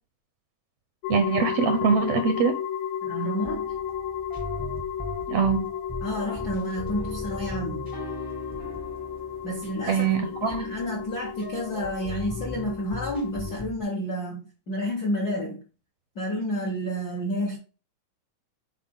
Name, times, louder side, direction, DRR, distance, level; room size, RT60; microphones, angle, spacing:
sound 1, 1.0-13.6, left 9 dB, 85° left, 2.0 m, -34 dB
voice 1, 1.1-2.6 5.3-5.7 9.9-10.6, right 6 dB, 75° right, 1.5 m, -23 dB
voice 2, 3.0-3.7 6.0-7.9 9.4-10.1 10.4-15.6 16.1-17.6, equal, 55° left, 1.1 m, -30 dB
sound 2, 3.4-13.8, equal, 35° left, 0.3 m, -39 dB
8.3 x 4.4 x 3.6 m
omnidirectional pair, 3.5 m